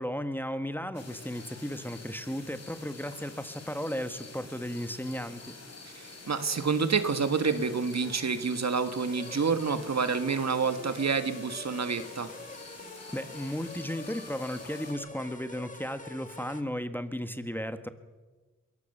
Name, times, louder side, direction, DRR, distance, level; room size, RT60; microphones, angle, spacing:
voice 1, 0.0-5.6 13.1-17.9, equal, 5° left, 10 dB, 1.6 m, -35 dB
sound 1, 0.9-14.9, left 3 dB, 50° left, 4.7 m, -47 dB
voice 2, 5.9-12.3, right 5 dB, 55° right, 10 dB, 1.7 m, -28 dB
sound 2, 9.0-16.6, left 2 dB, 25° left, 2.2 m, -46 dB
22.0 x 17.5 x 6.8 m, 1.3 s
cardioid pair, 45°, 32 cm